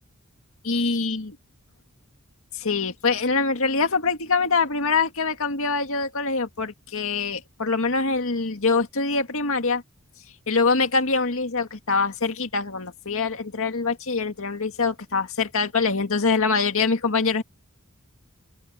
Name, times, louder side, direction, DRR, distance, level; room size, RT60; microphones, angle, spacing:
voice 1, 0.6-1.3 2.5-9.8 10.5-17.4, left 4 dB, 65° left, 2.1 m, -24 dB
open air
head